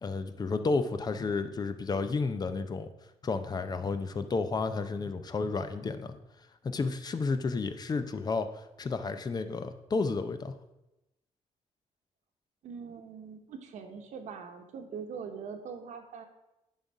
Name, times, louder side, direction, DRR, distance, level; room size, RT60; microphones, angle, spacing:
voice 1, 0.0-2.9 3.2-6.2 6.6-10.5, left 4 dB, 35° left, 10 dB, 0.6 m, -31 dB
voice 2, 12.6-16.3, right 6 dB, 80° right, 5 dB, 1.1 m, -42 dB
10.0 x 4.1 x 4.7 m, 0.95 s
cardioid pair, 115°, 12 cm